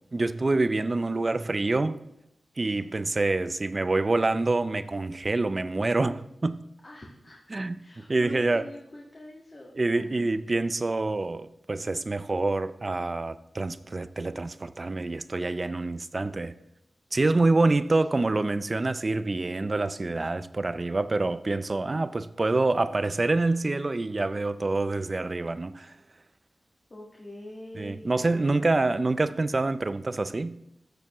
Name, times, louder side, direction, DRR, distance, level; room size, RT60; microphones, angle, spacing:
voice 1, 0.1-2.0 2.6-6.6 7.5-7.8 8.1-8.7 9.8-16.5 17.1-25.9 27.8-30.6, right 2 dB, 35° right, 0.4 m, -26 dB
voice 2, 6.8-10.3 18.1-18.9 26.9-28.8, left 1 dB, 35° left, 1.6 m, -46 dB
14.0 x 6.8 x 3.0 m
wide cardioid pair, 80°, 0 cm